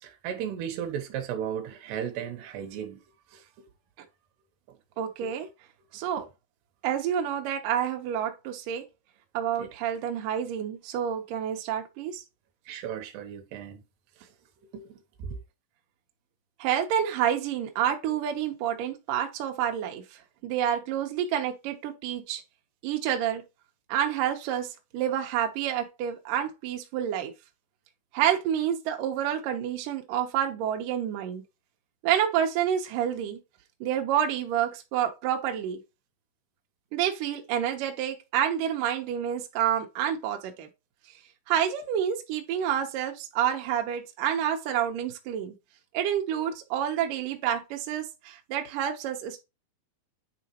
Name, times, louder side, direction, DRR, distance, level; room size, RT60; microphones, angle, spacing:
voice 1, 0.0-3.0 3.3-3.4 5.2-5.3 9.6-9.7 12.7-13.8 14.7-14.9 15.2-15.4, right 8 dB, 70° right, 2.9 m, -35 dB
voice 2, 5.0-5.5 5.9-6.3 6.8-8.8 9.3-12.2 16.6-20.0 20.4-22.4 22.8-23.4 23.9-27.3 28.1-31.4 32.0-33.4 33.8-35.8 36.9-40.7 41.5-45.5 45.9-49.4, right 9 dB, 90° right, 1.8 m, -28 dB
9.0 x 4.0 x 2.9 m
omnidirectional pair, 5.5 m